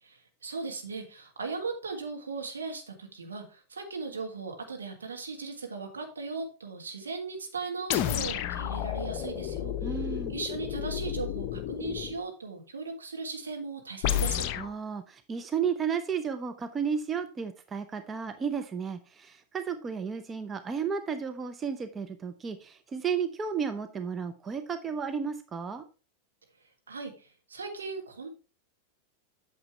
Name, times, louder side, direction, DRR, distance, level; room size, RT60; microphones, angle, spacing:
voice 1, 0.0-14.4 26.9-28.3, right 4 dB, 70° right, 3 dB, 1.6 m, -38 dB
sound 1, 7.9-12.2 14.0-14.7, left 11 dB, 40° left, 0.6 m, -31 dB
voice 2, 9.8-10.3 14.6-25.8, right 6 dB, 20° right, 9 dB, 0.7 m, -33 dB
8.7 x 6.7 x 3.3 m, 0.34 s
figure-of-eight pair, 90°, 0 cm